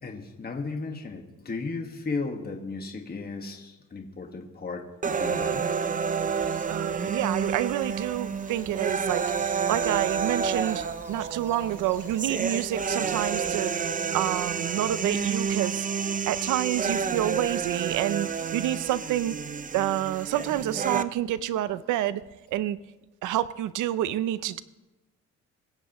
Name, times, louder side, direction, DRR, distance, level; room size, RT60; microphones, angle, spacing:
voice 1, 0.0-5.7, left 3 dB, 30° left, 2 dB, 1.7 m, -35 dB
sound 1, 5.0-21.0, right 6 dB, 25° right, 0.6 m, -29 dB
sound 2, 6.3-13.6, left 1 dB, 5° left, 3.6 m, -52 dB
voice 2, 6.7-13.7 14.1-15.9 16.3-19.4 19.7-22.2 22.5-22.8 23.2-24.6, right 13 dB, 90° right, 15 dB, 0.6 m, -28 dB
25.0 x 13.5 x 3.0 m, 1.1 s
cardioid pair, 90°, 30 cm